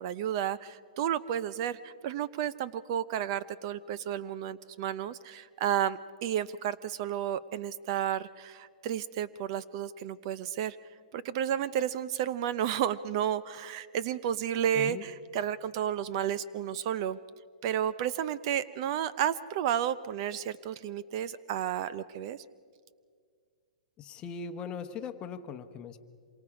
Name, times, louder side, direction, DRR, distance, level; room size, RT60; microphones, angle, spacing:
voice 1, 0.0-10.8 11.1-17.2 17.6-22.4, right 10 dB, 40° right, 16 dB, 0.5 m, -32 dB
voice 2, 24.0-26.0, left 6 dB, 20° left, 8 dB, 1.0 m, -39 dB
26.5 x 23.5 x 4.9 m, 2.1 s
hypercardioid pair, 150°, 4 cm